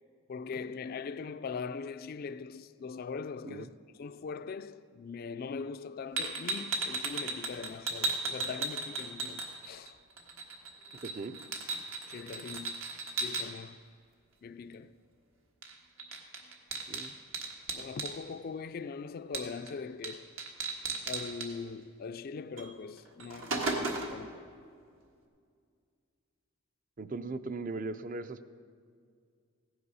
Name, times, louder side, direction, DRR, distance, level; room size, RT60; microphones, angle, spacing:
voice 1, 0.3-3.7 4.0-9.9 12.1-12.8 13.2-13.8 14.4-14.9 17.7-20.3 21.1-24.5, left 5 dB, 45° left, 0.3 m, -41 dB
sound 1, 6.2-9.9 10.2-13.4 15.6-15.7 16.0-18.1 19.3-19.7 20.0-20.1 20.4-21.5 22.6-22.7 23.1-24.2, right 3 dB, 80° right, 1.6 m, -35 dB
voice 2, 11.0-11.4 16.9-17.1 27.0-28.5, right 3 dB, 40° right, 0.5 m, -39 dB
15.5 x 9.6 x 5.5 m
head